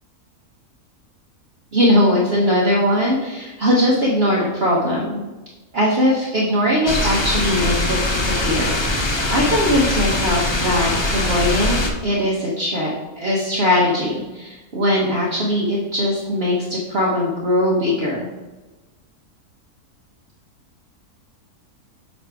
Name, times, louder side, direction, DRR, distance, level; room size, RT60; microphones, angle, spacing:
voice 1, 1.7-5.2 5.7-18.3, left 1 dB, 45° right, -4 dB, 1.2 m, -20 dB
sound 1, 6.9-11.9, left 1 dB, 30° left, 0.5 m, -21 dB
7.8 x 3.3 x 4.7 m, 1.2 s
omnidirectional pair, 1.6 m